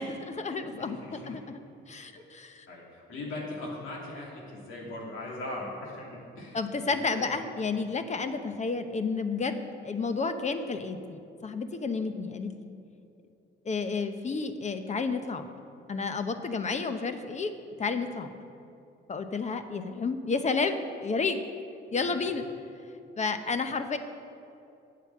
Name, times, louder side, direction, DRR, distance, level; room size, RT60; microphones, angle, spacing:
voice 1, 0.0-1.6 1.9-2.7 6.5-12.8 13.6-15.5 15.9-17.5 17.8-18.4 19.1-21.4 21.9-22.5 23.2-24.0, left 4 dB, 35° left, 9 dB, 0.8 m, -31 dB
voice 2, 0.6-1.4 2.1-2.2 2.7-6.6 6.9-7.3 22.0-22.3, left 2 dB, 85° left, -3 dB, 2.8 m, -40 dB
9.1 x 7.7 x 7.5 m, 2.6 s
cardioid pair, 90°, 20 cm